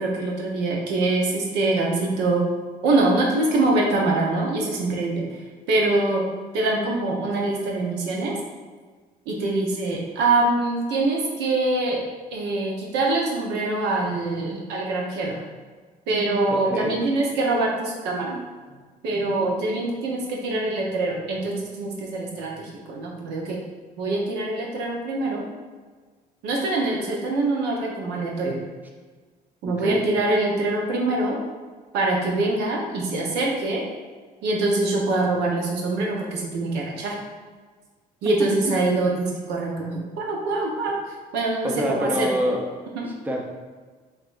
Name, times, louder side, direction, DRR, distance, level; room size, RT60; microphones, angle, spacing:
voice 1, 0.0-2.5 2.8-5.4 5.7-6.3 6.5-8.4 9.3-12.0 12.3-15.4 16.1-18.4 19.0-23.6 24.0-25.4 26.4-28.6 29.6-31.4 31.9-33.8 34.4-37.2 38.2-41.0 41.3-42.4 42.9-43.1, right 2 dB, 85° right, -1 dB, 0.9 m, -24 dB
voice 2, 16.5-17.0 29.6-30.0 41.6-42.7 43.0-43.5, equal, 10° right, 0 dB, 0.6 m, -27 dB
5.6 x 2.8 x 2.5 m, 1.4 s
cardioid pair, 110°, 17 cm